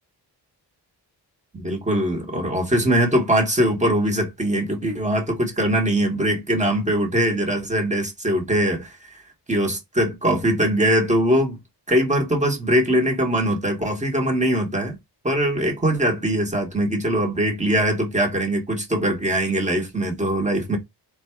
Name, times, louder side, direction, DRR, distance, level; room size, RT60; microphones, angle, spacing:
voice 1, 1.5-8.8 9.5-11.6 11.9-14.9 15.2-20.8, right 1 dB, 15° right, 1.1 m, -21 dB
4.0 x 2.3 x 4.3 m
wide cardioid pair, 165°, 42 cm